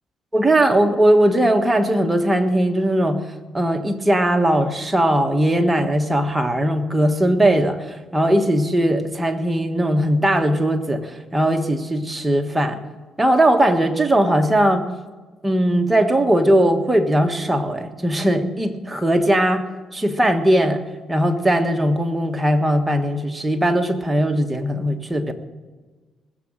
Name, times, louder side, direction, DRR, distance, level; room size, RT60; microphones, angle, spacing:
voice 1, 0.3-3.2 3.5-12.8 13.2-14.9 15.4-19.6 19.9-20.8 21.1-25.3, right 1 dB, 15° right, 5 dB, 1.4 m, -19 dB
19.5 x 7.6 x 7.6 m, 1.3 s
cardioid pair, 90°, 0 cm